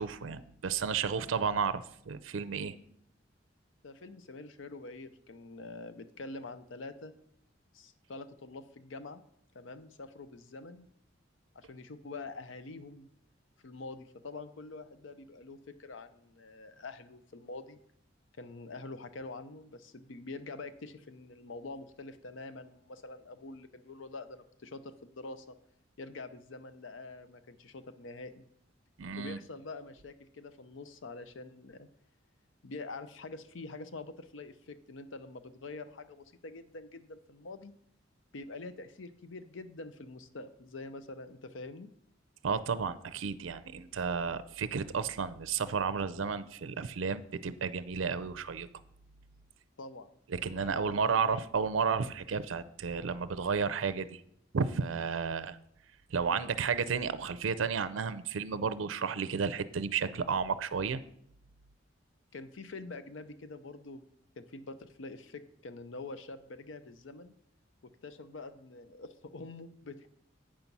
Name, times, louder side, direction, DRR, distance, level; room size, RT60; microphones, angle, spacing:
voice 1, 0.0-2.7 29.0-29.4 42.4-48.7 50.3-54.2 54.5-55.6 56.1-61.0, right 5 dB, 85° right, 15 dB, 0.5 m, -32 dB
voice 2, 3.8-7.1 7.7-9.2 9.5-10.9 11.5-13.1 13.6-17.8 18.4-25.6 26.0-28.4 29.2-31.9 32.6-37.7 38.3-41.9 49.8-50.1 50.5-51.0 51.3-51.4 56.3-56.6 62.3-64.0 64.4-67.3 67.8-70.1, left 3 dB, 75° left, 11 dB, 0.6 m, -45 dB
8.8 x 5.4 x 5.9 m, 0.70 s
head